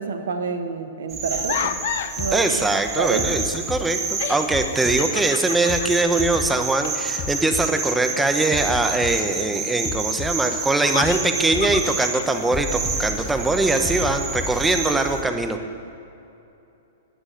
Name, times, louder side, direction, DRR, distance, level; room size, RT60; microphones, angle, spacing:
voice 1, 0.0-1.7 2.2-2.5 3.0-3.4, right 5 dB, 70° right, 7 dB, 1.4 m, -28 dB
sound 1, 1.1-15.2, right 4 dB, 25° right, 2.2 m, -29 dB
sound 2, 1.3-2.2 3.6-3.7 4.1-7.8 10.5-12.3, left 9 dB, 60° left, 0.6 m, -32 dB
sound 3, 2.2-2.6 3.2-4.0 4.5-5.3 5.7-5.9 6.2-6.6 7.2-8.0 8.5-9.3 9.8-10.6 11.0-11.2 11.5-12.0 12.5-14.7, left 6 dB, 25° left, 1.1 m, -33 dB
voice 2, 2.3-15.6, right 2 dB, 10° right, 6 dB, 1.1 m, -22 dB
13.0 x 8.9 x 9.0 m, 2.8 s
hypercardioid pair, 110°, 0 cm